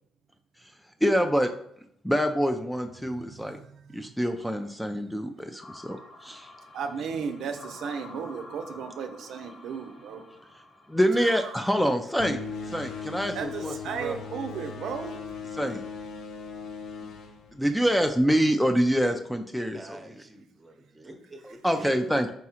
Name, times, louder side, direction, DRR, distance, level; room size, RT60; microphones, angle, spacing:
voice 1, 1.0-1.5 2.0-3.6 3.9-6.0 6.2-6.5 10.9-12.4 12.7-13.7 14.0-14.2 15.6-15.8 17.5-20.0 21.6-22.3, equal, ahead, 0.3 m, -25 dB
voice 2, 3.2-4.1 6.7-10.3 11.2-11.7 13.3-15.4, right 6 dB, 80° right, 0.4 m, -35 dB
sound 1, 5.6-12.7, left 2 dB, 45° left, 0.8 m, -49 dB
sound 2, 12.2-18.2, left 5 dB, 75° left, 0.5 m, -38 dB
voice 3, 19.7-22.1, right 1 dB, 20° right, 0.8 m, -46 dB
4.1 x 3.6 x 2.9 m
cardioid pair, 90°, 0 cm